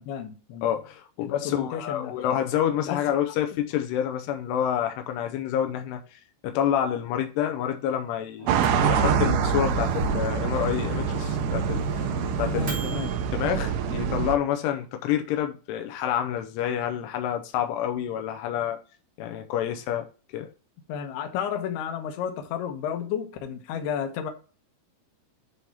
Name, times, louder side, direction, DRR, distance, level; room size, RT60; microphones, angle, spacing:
voice 1, 0.0-0.7 1.2-2.4 2.8-3.0 12.4-13.1 20.9-24.3, left 8 dB, 70° left, 2.5 m, -32 dB
voice 2, 0.6-13.1 13.3-18.8 19.2-20.1 20.3-20.5, left 10 dB, 85° left, 2.4 m, -28 dB
Microwave oven, 8.4-13.2, equal, 55° right, 1.6 m, -33 dB
sound 1, 8.5-14.4, right 8 dB, 80° right, 2.5 m, -26 dB
10.5 x 3.6 x 4.2 m
omnidirectional pair, 5.6 m